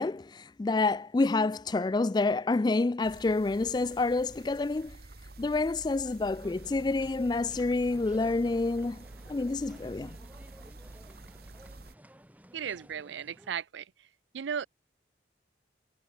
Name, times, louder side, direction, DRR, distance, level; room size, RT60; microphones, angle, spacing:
voice 1, 0.0-5.0 5.4-10.2, left 3 dB, 25° left, 0.3 m, -28 dB
sound 1, 3.0-12.0, right 2 dB, 55° right, 1.2 m, -49 dB
sound 2, 6.4-13.5, equal, 10° right, 1.6 m, -53 dB
voice 2, 12.5-13.9 14.3-14.7, right 7 dB, 85° right, 0.4 m, -35 dB
head